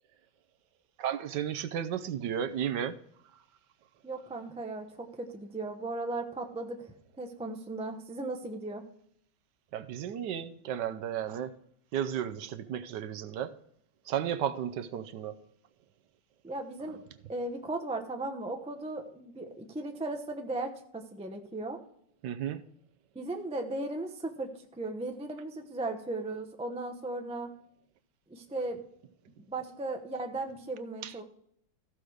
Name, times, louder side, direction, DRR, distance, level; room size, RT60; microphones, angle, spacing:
voice 1, 1.0-3.0 9.7-11.5 11.9-13.5 14.1-15.3 22.2-22.6 31.0-31.1, right 9 dB, 70° right, 1.2 m, -33 dB
voice 2, 4.0-6.8 7.2-8.8 16.4-17.0 17.3-21.8 23.1-27.5 28.3-28.8 29.5-31.2, right 2 dB, 10° right, 0.4 m, -36 dB
14.5 x 5.0 x 6.2 m
omnidirectional pair, 2.0 m